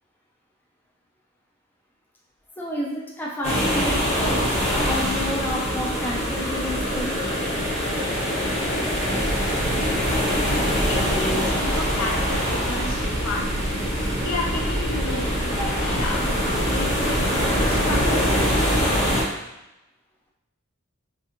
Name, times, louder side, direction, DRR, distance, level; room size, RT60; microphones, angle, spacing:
voice 1, 2.6-4.4 4.8-7.2, left 1 dB, 10° left, -4 dB, 0.4 m, -30 dB
sound 1, 3.4-19.2, equal, 30° left, 0.8 m, -24 dB
sound 2, 9.1-18.1, right 1 dB, 85° right, 0.6 m, -30 dB
voice 2, 10.9-13.5 14.2-15.3 15.7-18.4, left 2 dB, 75° left, -1 dB, 0.6 m, -32 dB
2.5 x 2.3 x 2.8 m, 0.94 s
head